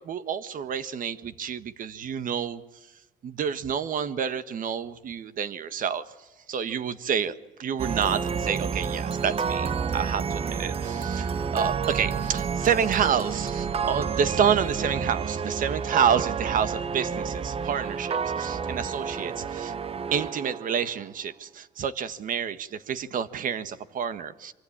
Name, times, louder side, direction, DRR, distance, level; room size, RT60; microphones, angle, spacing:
voice 1, 0.0-2.6 3.2-6.0 6.5-7.3 7.6-19.7 20.1-24.5, right 7 dB, 55° right, 13 dB, 1.5 m, -28 dB
sound 1, 7.8-21.1, right 6 dB, 35° right, 0.9 m, -30 dB
25.0 x 24.5 x 8.7 m, 1.1 s
cardioid pair, 110°, 17 cm